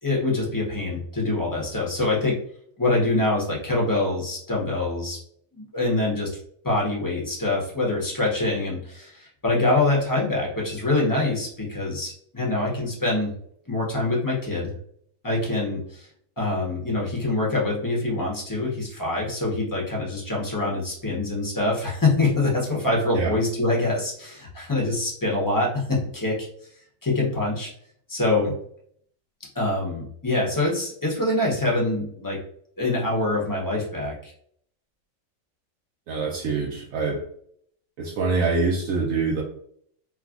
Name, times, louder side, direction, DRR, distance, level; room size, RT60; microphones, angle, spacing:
voice 1, 0.0-2.4 2.8-5.2 5.5-6.3 6.6-13.3 13.7-14.7 15.2-16.1 16.4-26.5 27.0-27.7 28.1-28.5 29.5-32.4 32.8-34.3, left 2 dB, 20° left, -3 dB, 0.6 m, -25 dB
voice 2, 36.1-37.2 38.0-39.4, right 4 dB, 75° right, -2 dB, 1.0 m, -25 dB
3.2 x 2.4 x 2.4 m, 0.64 s
omnidirectional pair, 1.4 m